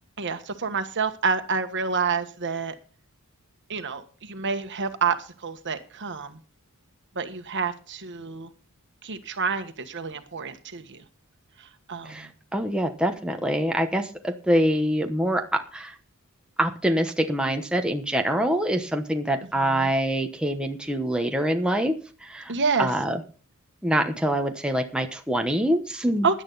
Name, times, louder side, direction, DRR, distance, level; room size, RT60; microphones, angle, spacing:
voice 1, 0.2-2.7 3.7-5.2 5.4-6.4 7.1-8.5 9.0-11.0 11.9-12.3 19.6-19.9 22.5-22.9 26.2-26.4, right 5 dB, 55° right, 8 dB, 1.4 m, -28 dB
voice 2, 12.1-15.9 16.6-21.9 22.2-22.5 22.8-23.2 23.8-26.3, right 1 dB, 5° right, 4 dB, 1.1 m, -25 dB
16.0 x 11.0 x 4.0 m, 0.39 s
head